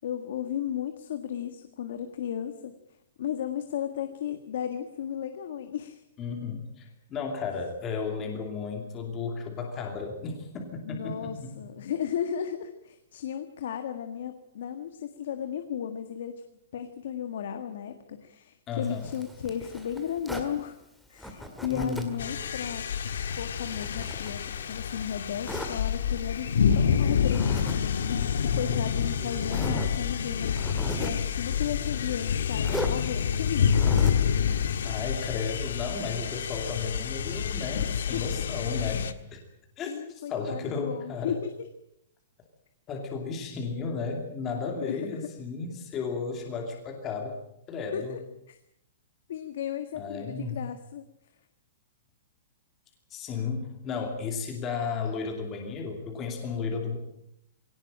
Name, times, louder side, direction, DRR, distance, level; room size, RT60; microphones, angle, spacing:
voice 1, 0.0-2.7 3.2-6.0 10.8-16.4 16.7-20.8 21.1-22.9 23.4-27.7 28.1-33.8 37.7-37.8 38.1-38.2 39.9-41.5 44.8-45.0 47.9-48.2 48.5-48.6 49.3-51.0, left 9 dB, 60° left, 8 dB, 1.6 m, -35 dB
voice 2, 6.2-11.6 18.7-19.1 21.7-22.1 28.4-28.9 29.2-29.8 34.8-39.4 39.8-41.3 42.9-47.4 47.7-48.2 49.9-50.6 53.1-57.0, left 5 dB, 15° left, 2 dB, 2.6 m, -34 dB
Zipper (clothing), 18.8-20.5 21.2-22.2 22.6-24.8 25.4-25.8 27.2-27.8 28.1-28.2 28.9-29.0 29.4-29.9 30.4-31.3 32.6-33.0 33.6-34.3, equal, ahead, 1.9 m, -37 dB
sound 1, 22.2-39.1, left 7 dB, 90° left, 1.5 m, -28 dB
20.0 x 18.0 x 8.8 m, 0.78 s
hypercardioid pair, 175°, 0 cm